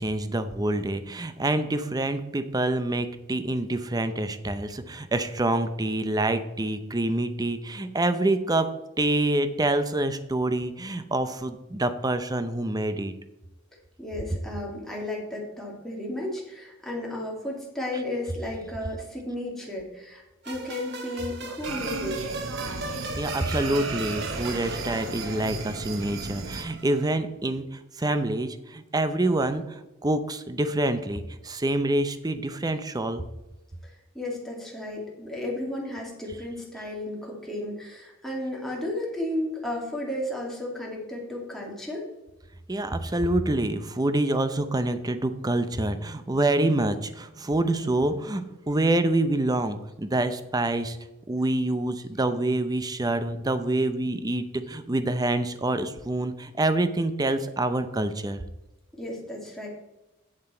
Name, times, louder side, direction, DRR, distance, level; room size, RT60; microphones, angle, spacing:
voice 1, 0.0-8.7 9.0-13.1 23.2-27.7 28.0-29.7 30.0-33.2 42.7-51.0 51.3-58.4, right 2 dB, 20° right, 10 dB, 0.6 m, -26 dB
voice 2, 14.0-22.2 33.8-42.1 58.9-59.7, left 1 dB, ahead, -3 dB, 2.3 m, -33 dB
sound 1, 20.4-27.1, right 3 dB, 55° right, 1.3 m, -37 dB
sound 2, 21.6-26.6, right 3 dB, 75° right, 1.0 m, -35 dB
9.0 x 7.3 x 4.3 m, 0.99 s
head